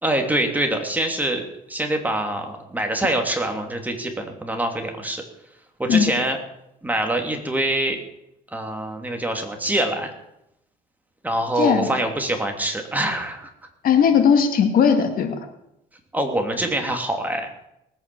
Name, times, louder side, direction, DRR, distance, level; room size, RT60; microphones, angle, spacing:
voice 1, 0.0-5.2 5.8-6.4 6.8-8.0 8.5-10.1 11.2-13.5 16.1-17.5, right 1 dB, 10° right, 4 dB, 2.8 m, -25 dB
voice 2, 11.6-11.9 13.8-15.4, left 7 dB, 60° left, 6 dB, 2.1 m, -18 dB
19.0 x 9.0 x 7.0 m, 0.82 s
cardioid pair, 110°, 17 cm